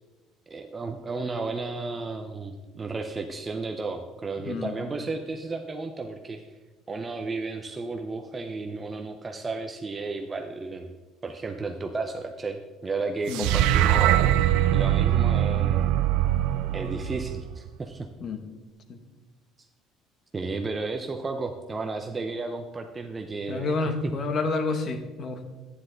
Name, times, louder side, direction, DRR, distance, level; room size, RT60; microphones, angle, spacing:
voice 1, 0.5-6.4 6.9-10.9 11.2-15.9 16.7-18.1 20.3-24.2, right 3 dB, 15° right, 4 dB, 0.5 m, -33 dB
voice 2, 4.4-4.7 13.3-13.5 18.2-18.4 18.9-19.0 23.5-25.4, left 3 dB, 30° left, 7 dB, 1.0 m, -29 dB
sound 1, 13.3-17.7, right 12 dB, 75° right, 0.5 m, -22 dB
12.0 x 9.6 x 3.9 m, 1.2 s
cardioid pair, 180°, 0 cm